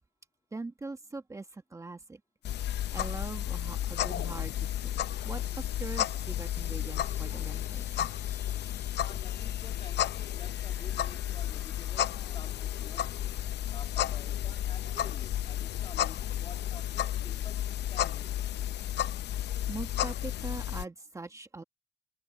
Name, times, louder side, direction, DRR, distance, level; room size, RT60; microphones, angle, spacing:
voice 1, 0.5-2.2 2.6-4.9 5.2-7.8 19.5-21.6, right 3 dB, 15° right, 1.6 m, -42 dB
sound 1, 2.4-20.8, left 12 dB, 65° left, 0.6 m, -32 dB
sound 2, 5.4-16.4, left 2 dB, 15° left, 2.7 m, -59 dB
voice 2, 9.0-13.1 13.7-18.3, left 4 dB, 30° left, 2.2 m, -51 dB
cardioid pair, 130°, 18 cm